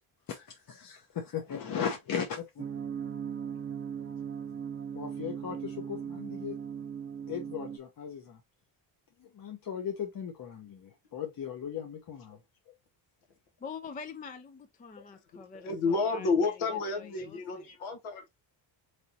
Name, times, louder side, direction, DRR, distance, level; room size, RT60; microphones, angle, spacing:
voice 1, 0.3-2.7 4.9-6.6 7.3-8.4 9.2-12.4 12.7-12.8 15.0-15.1, left 8 dB, 45° left, 0.8 m, -37 dB
sound 1, 2.6-7.8, right 7 dB, 25° right, 0.7 m, -38 dB
voice 2, 13.6-17.7, left 6 dB, 20° left, 0.3 m, -46 dB
voice 3, 15.3-18.3, left 4 dB, 80° left, 1.2 m, -30 dB
3.9 x 3.3 x 2.8 m
cardioid pair, 115°, 48 cm